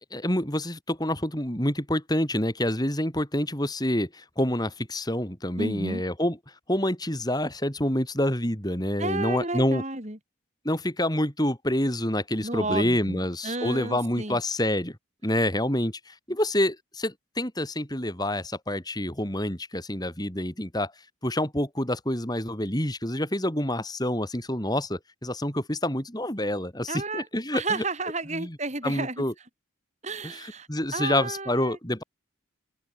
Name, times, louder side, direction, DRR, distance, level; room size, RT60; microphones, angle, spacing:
voice 1, 0.1-6.4 6.7-9.8 10.7-15.0 15.2-20.9 21.2-27.8 28.3-28.6 28.8-29.3 30.4-32.0, left 1 dB, 20° left, 5.4 m, -27 dB
voice 2, 5.6-6.0 9.0-10.2 12.4-14.4 26.9-27.3 27.5-29.3 30.0-31.8, right 3 dB, 35° right, 5.2 m, -32 dB
open air
head